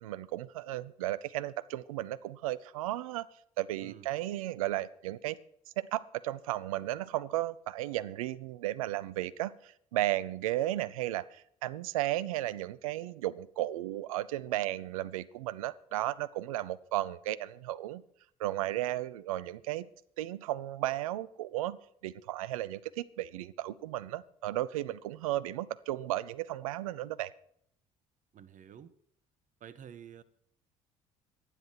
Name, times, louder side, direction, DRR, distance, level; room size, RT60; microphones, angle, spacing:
voice 1, 0.0-3.3 3.6-5.4 5.8-18.0 18.4-19.9 20.2-21.8 22.0-27.3, right 15 dB, 75° right, 0.6 m, -34 dB
voice 2, 28.3-28.9 29.6-30.2, right 9 dB, 45° right, 1.3 m, -50 dB
24.5 x 10.0 x 4.7 m
figure-of-eight pair, 55°, 18 cm